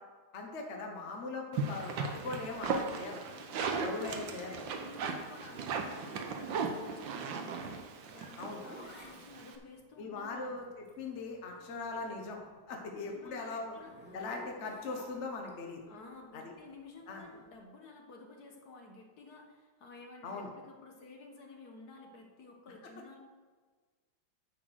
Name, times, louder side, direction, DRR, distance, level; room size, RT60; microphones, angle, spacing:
voice 1, 0.3-3.2 3.7-4.7 8.4-8.6 10.0-12.4 12.7-13.7 14.1-15.8 16.3-16.5 17.1-17.2 20.2-20.5, left 3 dB, 45° left, 1 dB, 1.2 m, -40 dB
sound 1, 1.5-9.5, right 4 dB, 85° right, 1.7 m, -37 dB
voice 2, 3.3-3.7 4.0-10.6 12.9-13.9 15.9-23.2, left 3 dB, 60° left, 2 dB, 1.7 m, -53 dB
Zipper (clothing), 8.1-12.5 12.8-15.5 17.1-17.4, equal, 5° right, 1.7 m, -54 dB
9.0 x 6.1 x 6.3 m, 1.5 s
omnidirectional pair, 2.0 m